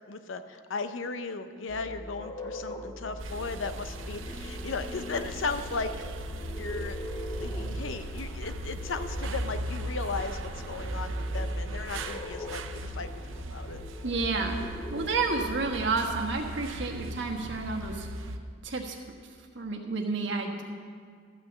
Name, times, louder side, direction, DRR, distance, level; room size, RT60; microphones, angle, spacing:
voice 1, 0.1-5.9 6.6-7.0 7.4-13.8, left 4 dB, 85° left, 9 dB, 0.7 m, -36 dB
sound 1, 1.7-15.9, left 1 dB, 20° left, 0.6 m, -41 dB
sound 2, 3.2-18.4, right 1 dB, 90° right, 0.6 m, -37 dB
voice 2, 14.0-14.6 14.9-18.1 18.6-19.0 19.5-20.6, right 3 dB, 65° right, 2 dB, 1.3 m, -30 dB
13.5 x 6.0 x 7.4 m, 2.1 s
head